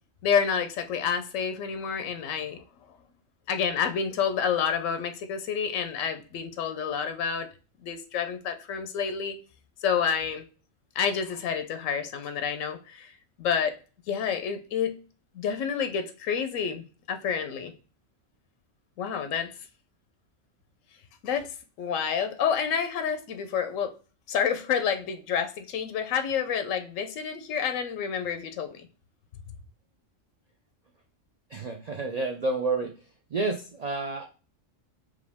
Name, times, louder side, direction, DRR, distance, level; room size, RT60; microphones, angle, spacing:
voice 1, 0.2-2.6 3.5-7.5 7.8-9.4 9.8-10.4 11.0-13.1 13.4-13.7 14.1-15.0 15.3-17.7 19.0-19.5 21.2-21.5 21.8-23.9 24.3-28.9, left 7 dB, 90° left, 1.0 m, -29 dB
voice 2, 31.5-33.0 33.3-34.3, right 3 dB, 90° right, 0.3 m, -29 dB
4.9 x 2.5 x 3.4 m
omnidirectional pair, 1.3 m